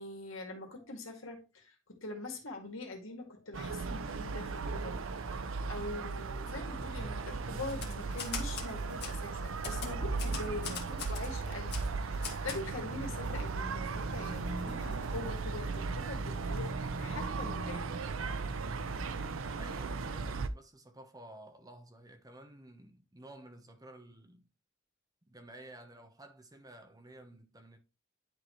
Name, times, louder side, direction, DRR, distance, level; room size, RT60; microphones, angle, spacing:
voice 1, 0.0-18.0, left 2 dB, 85° left, 2.1 m, -43 dB
sound 1, 3.5-20.5, right 4 dB, 85° right, 0.6 m, -36 dB
Typewriter, 7.7-8.7 9.0-9.1 9.6-11.3 11.7-11.9 12.2-12.6, left 6 dB, 55° left, 1.9 m, -40 dB
sound 2, 7.8-15.7, right 1 dB, 40° right, 3.2 m, -55 dB
voice 2, 19.5-24.5 25.3-27.8, right 1 dB, 20° right, 0.9 m, -53 dB
10.5 x 4.1 x 3.1 m
head